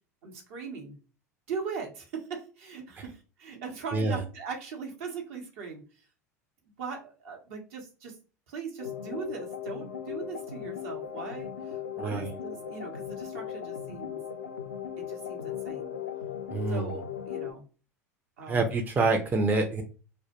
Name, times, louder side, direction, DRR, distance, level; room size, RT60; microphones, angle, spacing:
voice 1, 0.2-1.0 1.5-6.1 6.8-8.2 8.5-14.2 15.0-15.9 16.7-17.6 18.4-18.7, right 5 dB, 60° right, 1 dB, 0.8 m, -40 dB
sound 1, 8.8-17.5, left 9 dB, 90° left, 0.4 m, -37 dB
voice 2, 12.0-12.3 16.5-16.9 18.5-19.8, right 3 dB, 20° right, 3 dB, 0.4 m, -26 dB
2.2 x 2.0 x 2.8 m, 0.36 s
figure-of-eight pair, 75°, 8 cm